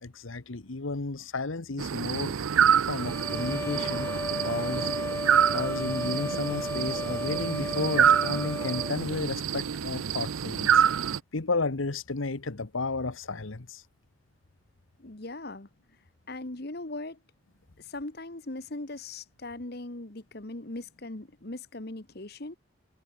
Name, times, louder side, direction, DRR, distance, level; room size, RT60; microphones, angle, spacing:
voice 1, 0.0-2.3 2.9-4.1 4.4-4.9 5.5-10.8 11.3-13.8, left 3 dB, 75° left, 1.1 m, -32 dB
sound 1, 1.8-11.2, right 8 dB, 85° right, 0.6 m, -27 dB
sound 2, 3.0-9.0, left 1 dB, 10° left, 1.6 m, -34 dB
voice 2, 15.0-15.7 16.3-17.2 17.8-22.6, left 2 dB, 50° left, 1.5 m, -39 dB
head